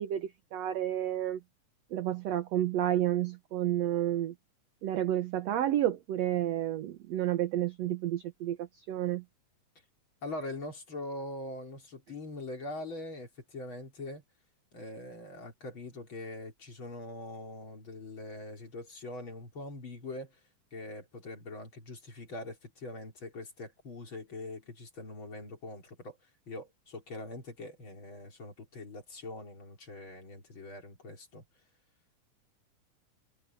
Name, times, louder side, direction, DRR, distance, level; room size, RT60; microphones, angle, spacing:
voice 1, 0.0-1.4 1.9-4.3 4.8-9.2, right 12 dB, 70° right, 1.6 m, -30 dB
voice 2, 10.2-14.2 14.7-20.4 20.7-26.2 26.5-31.4, left 2 dB, 35° left, 4.3 m, -43 dB
omnidirectional pair, 3.9 m